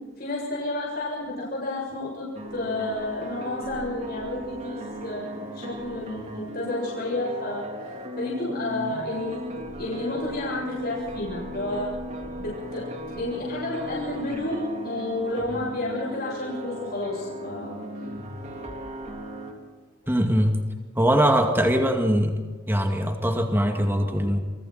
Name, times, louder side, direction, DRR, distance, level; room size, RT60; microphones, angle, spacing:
voice 1, 0.2-7.7 8.2-11.9 12.4-12.9 13.1-17.8 20.0-20.1 21.0-21.2 21.5-21.6, left 2 dB, 50° left, -4 dB, 7.5 m, -31 dB
sound 1, 2.3-19.5, equal, 35° right, 3.5 m, -37 dB
voice 2, 20.1-20.6 21.0-22.4 22.7-24.4, equal, 10° right, 3 dB, 2.3 m, -22 dB
28.5 x 23.0 x 4.4 m, 1.4 s
head